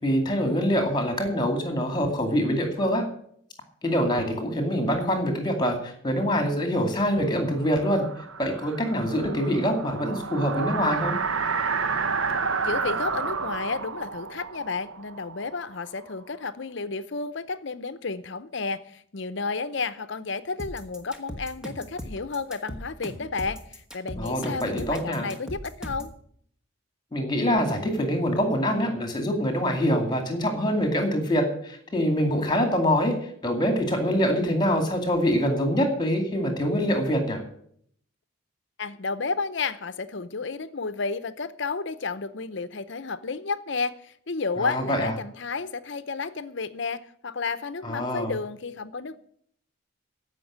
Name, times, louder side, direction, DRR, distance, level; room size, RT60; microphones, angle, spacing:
voice 1, 0.0-3.0 3.8-8.0 8.4-11.2 24.2-25.3 27.1-33.1 33.4-37.4 44.6-45.1 47.8-48.3, equal, 20° left, 2.4 m, -25 dB
sound 1, 7.4-16.1, right 5 dB, 75° right, 0.9 m, -30 dB
voice 2, 12.6-26.1 38.8-49.2, left 4 dB, 60° left, 0.7 m, -32 dB
sound 2, 20.6-26.2, equal, 5° right, 1.3 m, -38 dB
15.0 x 5.9 x 8.6 m
head